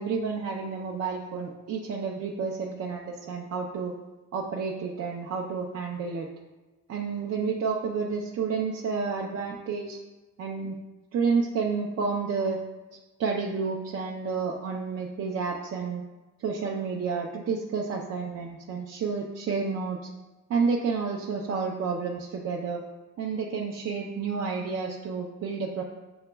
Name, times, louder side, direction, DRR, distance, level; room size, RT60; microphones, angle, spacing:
voice 1, 0.0-3.9 4.3-6.3 6.9-10.0 10.4-10.8 11.1-12.6 13.2-16.0 16.4-20.0 20.5-22.8 23.2-25.8, right 5 dB, 55° right, -1 dB, 0.6 m, -30 dB
7.9 x 2.9 x 2.3 m, 1.1 s
cardioid pair, 90°, 30 cm